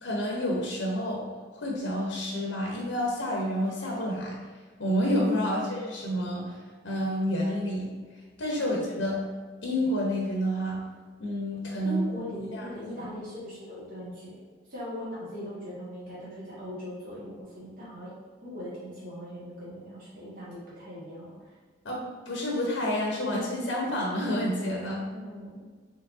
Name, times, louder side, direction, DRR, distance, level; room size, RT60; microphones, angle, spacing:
voice 1, 0.0-1.2 1.5-4.4 4.8-6.5 6.8-7.9 8.4-9.2 9.6-10.8 11.2-12.0 12.5-12.7 21.8-25.0, equal, 80° left, -2 dB, 0.8 m, -29 dB
voice 2, 11.8-14.4 14.7-18.1 18.4-21.3 25.0-25.6, left 1 dB, 50° right, -10 dB, 1.5 m, -40 dB
4.6 x 3.3 x 2.6 m, 1.5 s
head